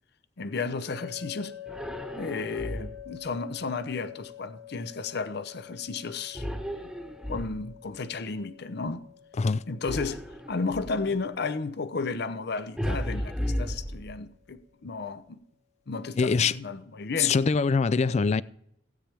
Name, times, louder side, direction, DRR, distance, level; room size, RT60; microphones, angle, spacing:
voice 1, 0.4-1.5 2.1-6.5 7.3-9.0 9.7-10.2 10.5-15.4 15.9-17.3, left 4 dB, 60° left, 0.7 m, -33 dB
sound 1, 0.9-14.0, left 9 dB, 80° left, 1.4 m, -48 dB
sound 2, 1.7-3.2 6.3-7.9 9.8-11.1 12.8-14.5, equal, 5° right, 1.2 m, -34 dB
voice 2, 16.2-16.6 17.2-18.4, left 5 dB, 35° left, 0.4 m, -23 dB
16.5 x 8.9 x 3.4 m
head